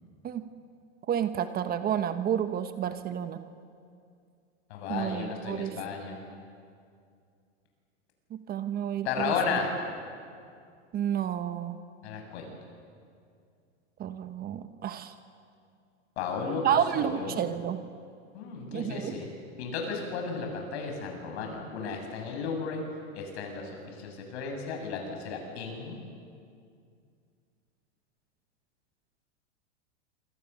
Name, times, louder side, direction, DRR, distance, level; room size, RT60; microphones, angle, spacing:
voice 1, 1.1-3.4 4.9-5.7 8.3-9.3 10.9-11.8 14.0-15.1 16.6-17.8 18.7-19.2, right 9 dB, 25° right, 9 dB, 1.2 m, -30 dB
voice 2, 4.7-6.2 9.0-9.7 12.0-12.5 16.2-16.6 16.9-17.4 18.3-19.3 19.6-22.8 23.1-26.0, left 5 dB, 60° left, 3 dB, 7.7 m, -34 dB
27.0 x 25.5 x 7.1 m, 2.3 s
hypercardioid pair, 130°, 36 cm